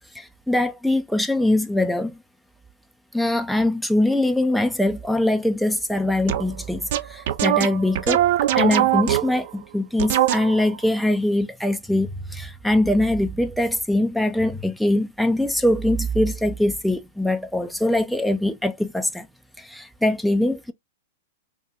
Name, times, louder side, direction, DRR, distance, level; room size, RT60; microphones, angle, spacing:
voice 1, 0.2-2.1 3.1-8.2 8.6-19.3 19.6-20.7, left 1 dB, ahead, 0.4 m, -22 dB
sound 1, 6.3-6.5 6.9-9.5 10.0-10.8, right 13 dB, 60° right, 0.4 m, -21 dB
3.5 x 2.2 x 2.7 m
hypercardioid pair, 125°, 0 cm